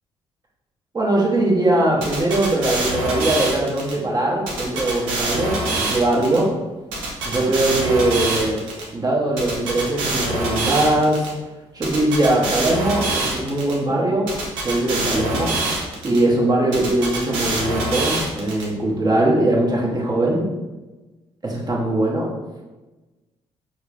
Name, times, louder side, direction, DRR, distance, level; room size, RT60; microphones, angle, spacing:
voice 1, 0.9-6.5 7.2-8.6 8.9-11.3 11.7-14.3 14.6-15.6 16.0-20.5 21.4-22.3, right 1 dB, 35° right, -3 dB, 1.0 m, -21 dB
sound 1, 2.0-3.9 4.5-6.4 6.9-8.8 9.4-11.3 11.8-13.7 14.3-16.2 16.7-18.6, right 2 dB, 85° right, 0.6 m, -25 dB
4.3 x 2.1 x 2.5 m, 1.1 s
hypercardioid pair, 50°, 13 cm